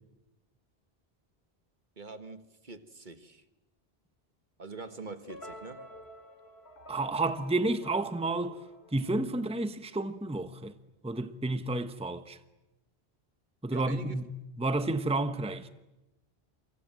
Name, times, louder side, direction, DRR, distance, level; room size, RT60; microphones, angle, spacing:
voice 1, 2.0-3.4 4.6-5.9 13.7-14.2, right 3 dB, 50° right, 1.6 m, -44 dB
sound 1, 5.3-9.6, left 1 dB, 90° left, 2.8 m, -49 dB
voice 2, 6.9-8.6 8.9-10.7 11.0-12.4 13.6-14.3 14.6-15.7, right 2 dB, 5° right, 1.0 m, -31 dB
29.0 x 24.5 x 7.7 m
omnidirectional pair, 1.0 m